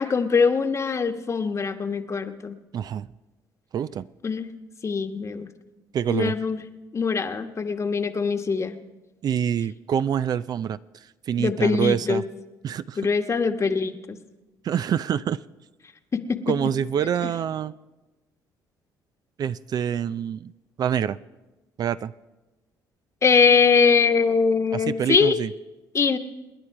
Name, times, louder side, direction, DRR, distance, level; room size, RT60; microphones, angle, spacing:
voice 1, 0.0-2.6 4.2-4.5 4.8-5.5 6.1-6.6 6.9-8.7 11.4-12.2 13.0-14.2 16.1-16.4 17.2-17.3 23.2-25.3 25.9-26.2, left 5 dB, 35° left, 8 dB, 1.3 m, -22 dB
voice 2, 2.7-3.1 3.7-4.1 5.9-6.3 9.2-10.8 11.3-12.2 12.6-13.0 14.6-15.4 16.5-17.7 19.4-20.5 20.8-21.2 21.8-22.1 24.7-25.5, right 9 dB, 55° right, 15 dB, 0.5 m, -26 dB
27.5 x 10.0 x 4.8 m, 1.1 s
supercardioid pair, 75°, 8 cm